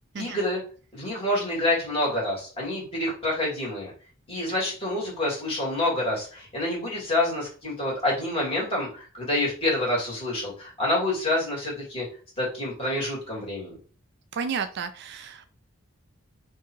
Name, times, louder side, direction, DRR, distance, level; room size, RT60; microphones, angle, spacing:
voice 1, 0.2-0.6 0.9-3.9 4.3-12.0 12.4-13.7, left 1 dB, 25° left, -5 dB, 2.3 m, -27 dB
voice 2, 14.3-15.5, right 6 dB, 50° right, 9 dB, 0.4 m, -32 dB
3.6 x 2.7 x 4.5 m, 0.38 s
head